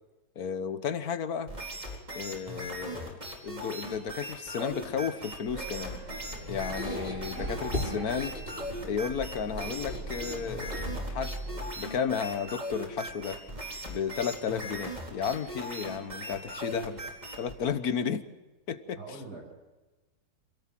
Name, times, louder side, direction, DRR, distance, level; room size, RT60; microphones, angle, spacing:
voice 1, 0.3-1.5 2.1-6.0 6.5-8.4 8.8-11.4 11.8-13.4 13.8-17.0 17.4-18.3 18.7-19.0, left 7 dB, 70° left, 11 dB, 1.6 m, -33 dB
sound 1, 1.5-17.6, equal, 25° right, 4.4 m, -39 dB
sound 2, 5.5-11.7, right 2 dB, 50° right, 7.8 m, -41 dB
Squeak, 6.1-11.3, left 2 dB, 30° left, 3.6 m, -40 dB
voice 2, 7.6-8.0 19.0-19.5, right 3 dB, 85° right, 1 dB, 8.0 m, -43 dB
27.5 x 17.5 x 7.6 m, 1.2 s
omnidirectional pair, 1.7 m